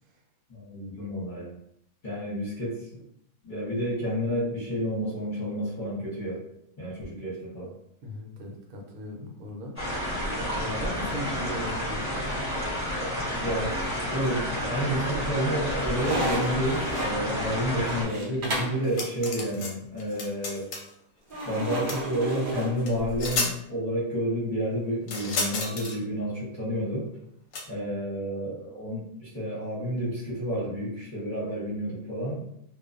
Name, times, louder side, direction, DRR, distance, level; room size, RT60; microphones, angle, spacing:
voice 1, 0.5-1.6 2.0-3.0 3.4-6.4 6.8-7.7 13.4-20.7 21.5-27.1 27.6-32.5, equal, 40° left, -7 dB, 0.8 m, -30 dB
voice 2, 8.0-9.8 10.6-12.3, equal, 75° right, 1 dB, 1.0 m, -38 dB
sound 1, 9.8-18.0, equal, 5° right, 0.9 m, -30 dB
sound 2, 14.2-14.8 15.2-18.9 21.3-23.4, right 1 dB, 60° right, 0.5 m, -33 dB
sound 3, 18.8-19.7 20.0-20.9 21.9-22.0 22.9-23.0 23.2-23.5 25.1-26.0 27.5-27.6, left 3 dB, 70° left, 0.9 m, -31 dB
2.4 x 2.2 x 2.4 m, 0.73 s
omnidirectional pair, 1.6 m